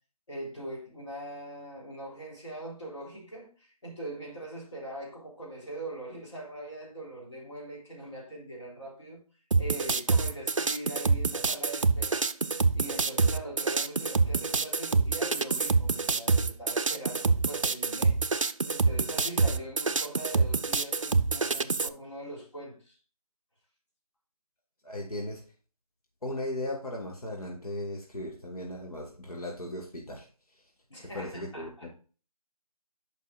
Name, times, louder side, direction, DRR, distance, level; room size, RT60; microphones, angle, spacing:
voice 1, 0.3-9.2 9.6-12.2 12.7-18.2 18.6-23.0 30.9-31.9, right 1 dB, 50° left, 3.7 m, -41 dB
sound 1, 9.5-21.9, right 4 dB, 55° right, 0.5 m, -26 dB
voice 2, 24.8-25.4 26.2-30.6 31.1-31.9, left 1 dB, 70° left, 2.0 m, -37 dB
11.0 x 5.4 x 2.5 m
figure-of-eight pair, 165°, 19 cm